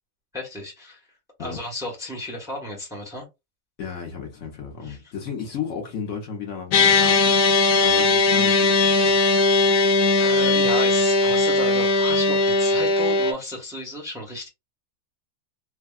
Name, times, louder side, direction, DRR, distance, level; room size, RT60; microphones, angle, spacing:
voice 1, 0.3-1.0 1.4-3.2 4.8-5.0 10.2-14.5, left 1 dB, 5° right, 1.0 m, -33 dB
voice 2, 3.8-9.2, left 6 dB, 60° left, 1.1 m, -34 dB
sound 1, 6.7-13.3, left 3 dB, 90° left, 1.1 m, -19 dB
3.5 x 2.2 x 2.3 m
omnidirectional pair, 1.5 m